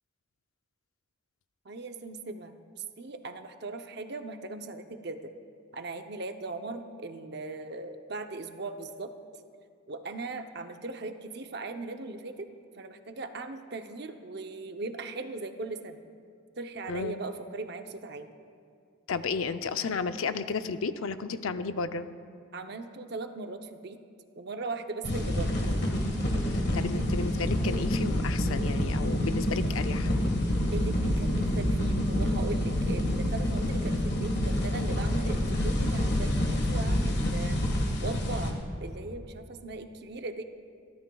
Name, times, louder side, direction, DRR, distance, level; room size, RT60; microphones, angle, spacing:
voice 1, 1.6-5.3 5.7-9.1 9.9-12.5 12.7-16.0 16.6-18.3 22.5-24.0 24.3-25.6 30.7-37.6 38.0-38.5 38.8-40.4, right 3 dB, 50° right, 6 dB, 0.7 m, -39 dB
voice 2, 19.1-22.1 26.5-30.1, left 4 dB, 85° left, 10 dB, 0.5 m, -33 dB
sound 1, 25.0-38.5, left 1 dB, 50° left, 1.7 m, -27 dB
26.5 x 13.0 x 2.3 m, 2.3 s
head